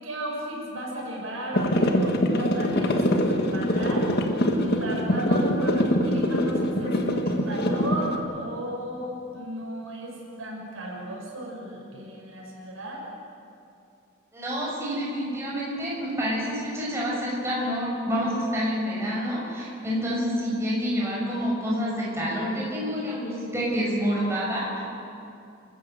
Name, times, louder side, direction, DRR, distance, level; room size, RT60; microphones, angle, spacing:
voice 1, 0.0-4.2 4.5-13.0, right 1 dB, 75° right, -2 dB, 6.4 m, -34 dB
sound 1, 1.5-8.2, equal, 50° left, 1.8 m, -24 dB
voice 2, 14.3-24.8, equal, 15° right, -5 dB, 6.1 m, -28 dB
29.0 x 14.5 x 7.8 m, 2.6 s
head